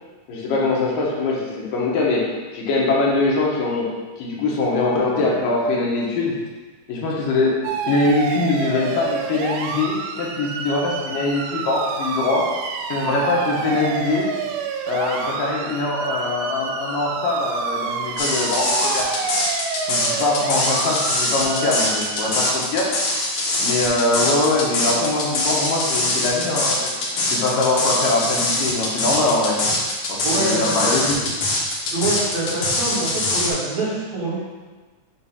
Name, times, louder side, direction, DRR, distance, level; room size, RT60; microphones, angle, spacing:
voice 1, 0.3-3.9 4.2-6.4 6.9-12.5 12.9-14.3 14.9-19.1 19.9-22.9 23.6-26.9 27.3-29.6 30.1-31.2, left 2 dB, 85° left, -3 dB, 2.7 m, -22 dB
sound 1, 7.6-22.5, right 6 dB, 90° right, 1.6 m, -28 dB
sound 2, 18.2-33.5, left 2 dB, 65° left, 1.4 m, -23 dB
voice 2, 30.2-31.3 31.9-34.4, right 2 dB, 60° right, -9 dB, 2.8 m, -25 dB
7.3 x 2.6 x 5.5 m, 1.3 s
omnidirectional pair, 3.8 m